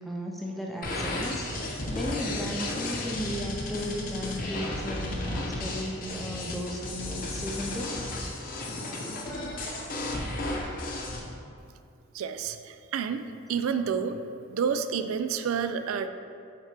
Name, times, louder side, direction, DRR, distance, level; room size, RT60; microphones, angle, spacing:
voice 1, 0.1-7.9, equal, ahead, -1 dB, 0.4 m, -35 dB
sound 1, 0.8-11.2, left 1 dB, 40° left, 0.7 m, -33 dB
voice 2, 12.1-13.2 13.5-14.2 14.5-16.1, right 6 dB, 85° right, 9 dB, 0.3 m, -29 dB
7.7 x 4.4 x 3.3 m, 2.5 s
head